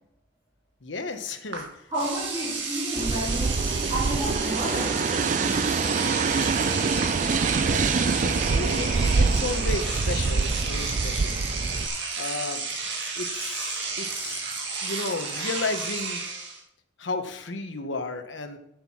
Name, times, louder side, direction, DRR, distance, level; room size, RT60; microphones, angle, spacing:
voice 1, 0.8-1.7 6.7-11.4 12.2-12.6 13.1-14.5 14.8-16.2 17.0-18.6, left 3 dB, 90° left, 7 dB, 1.1 m, -34 dB
Engine / Domestic sounds home sounds, 1.5-1.6 1.9-16.6, right 4 dB, 75° right, 1.9 m, -32 dB
voice 2, 1.9-6.3, right 1 dB, 20° right, -7 dB, 2.6 m, -32 dB
sound 1, 2.9-11.9, right 4 dB, 45° right, 0.4 m, -25 dB
7.5 x 6.9 x 5.8 m, 0.77 s
head